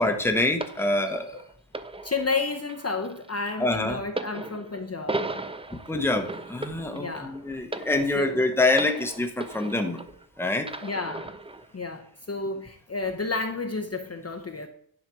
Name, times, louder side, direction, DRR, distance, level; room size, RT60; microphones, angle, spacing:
voice 1, 0.0-1.4 3.6-4.0 5.9-10.0 10.4-10.7, left 2 dB, 5° left, 5 dB, 1.0 m, -25 dB
sound 1, 0.6-10.3 10.6-11.7 12.5-12.6, right 2 dB, 15° right, 0.4 m, -37 dB
voice 2, 2.0-5.3 6.9-7.4 8.1-8.4 10.8-11.3 11.7-14.7, left 3 dB, 30° left, 4 dB, 0.8 m, -31 dB
10.5 x 4.1 x 6.1 m, 0.66 s
wide cardioid pair, 140°, 48 cm